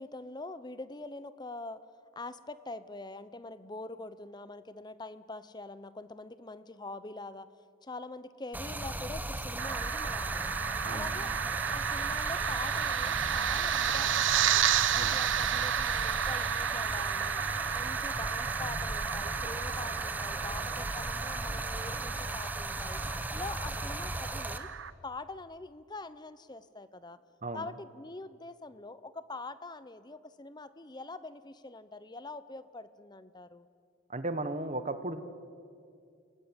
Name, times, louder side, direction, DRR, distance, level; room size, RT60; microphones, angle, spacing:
voice 1, 0.0-1.8 2.2-7.5 7.8-10.5 10.9-11.3 11.7-14.6 14.9-17.4 17.7-23.0 23.3-24.7 25.0-27.2 27.5-33.7, left 2 dB, 20° left, 14 dB, 0.7 m, -44 dB
Stream, 8.5-24.6, right 1 dB, 10° right, 1.0 m, -37 dB
sound 1, 9.6-24.9, right 9 dB, 60° right, 0.6 m, -32 dB
voice 2, 10.8-11.2 14.9-15.2 27.4-27.7 34.1-35.2, right 2 dB, 35° right, 10 dB, 1.4 m, -36 dB
sound 2, 13.2-14.5 15.6-16.4 16.9-18.3 18.9-19.9 20.5-21.8, left 3 dB, 65° left, 3.1 m, -54 dB
28.5 x 18.5 x 8.9 m, 2.3 s
head